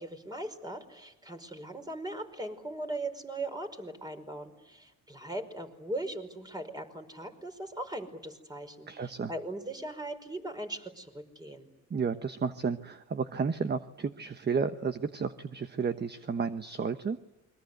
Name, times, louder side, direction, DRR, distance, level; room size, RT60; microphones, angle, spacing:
voice 1, 0.0-11.7, right 1 dB, 15° right, 6 dB, 5.1 m, -39 dB
voice 2, 8.9-9.3 11.9-17.2, right 5 dB, 35° right, 10 dB, 1.2 m, -32 dB
28.5 x 23.5 x 8.1 m, 1.1 s
cardioid pair, 90°, 30 cm